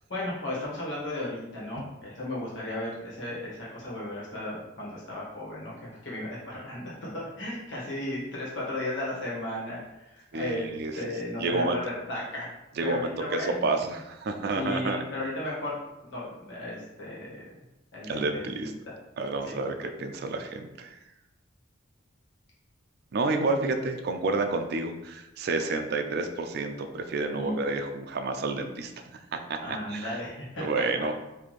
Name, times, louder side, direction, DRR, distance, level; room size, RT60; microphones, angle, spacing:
voice 1, 0.1-9.8 10.0-14.0 14.5-15.8 16.1-17.4 17.9-18.9 19.4-19.7 27.3-27.6 29.6-31.0, left 1 dB, 75° left, -6 dB, 1.4 m, -35 dB
voice 2, 10.3-11.1 11.4-11.8 12.8-13.0 13.3-15.0 18.1-18.7 19.2-21.0 23.1-28.9 29.3-30.2 30.6-31.1, right 3 dB, 60° right, 6 dB, 0.4 m, -30 dB
3.1 x 2.7 x 4.1 m, 0.95 s
head